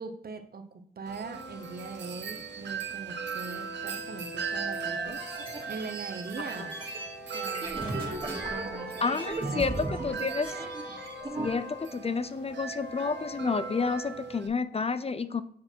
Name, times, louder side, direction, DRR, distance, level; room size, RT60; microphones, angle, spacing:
voice 1, 0.0-5.2 5.7-6.8 7.3-9.2 9.4-10.2, right 4 dB, 60° right, 7 dB, 0.9 m, -41 dB
Wind chime, 1.1-14.5, right 6 dB, 85° right, 0.8 m, -39 dB
sound 1, 1.3-5.8 6.6-11.9 12.7-14.0, left 1 dB, 90° left, 1.3 m, -45 dB
sound 2, 4.9-11.5, right 2 dB, 30° right, 2.3 m, -37 dB
voice 2, 9.0-10.5 11.4-15.4, left 4 dB, 35° left, 13 dB, 0.5 m, -30 dB
7.3 x 4.4 x 4.5 m, 0.67 s
cardioid pair, 60°, 18 cm